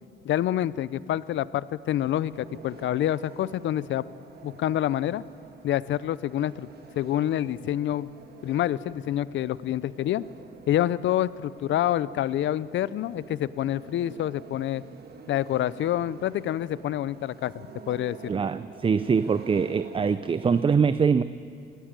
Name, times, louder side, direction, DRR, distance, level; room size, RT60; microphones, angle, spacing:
voice 1, 0.2-4.0 4.4-5.2 5.6-6.7 7.0-8.1 8.4-10.2 10.7-14.8 15.3-18.3, left 12 dB, 70° left, 18 dB, 0.6 m, -27 dB
sound 1, 2.0-20.6, right 6 dB, 55° right, 1.5 m, -48 dB
voice 2, 18.3-21.2, right 6 dB, 25° right, 14 dB, 0.5 m, -23 dB
22.0 x 15.0 x 8.9 m, 2.4 s
cardioid pair, 90°, 20 cm